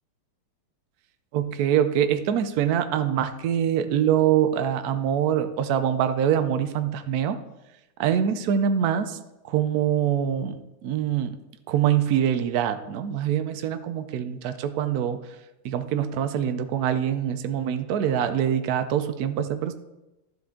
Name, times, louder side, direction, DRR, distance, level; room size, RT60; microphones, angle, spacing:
voice 1, 1.3-7.4 8.0-9.2 9.4-11.4 11.7-15.2 15.6-19.7, right 9 dB, 85° right, 10 dB, 0.8 m, -24 dB
12.0 x 7.7 x 3.7 m, 0.98 s
omnidirectional pair, 2.4 m